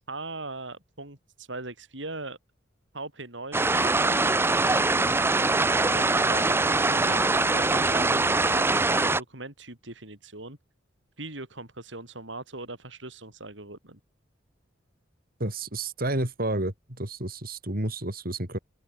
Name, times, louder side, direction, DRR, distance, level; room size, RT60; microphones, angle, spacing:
voice 1, 0.0-2.4 2.9-4.6 5.9-7.3 7.5-10.6 11.2-14.0, right 2 dB, 85° right, 7.7 m, -40 dB
sound 1, 3.5-9.2, right 3 dB, 15° right, 0.5 m, -23 dB
voice 2, 15.4-18.6, right 1 dB, 55° right, 5.4 m, -30 dB
open air
head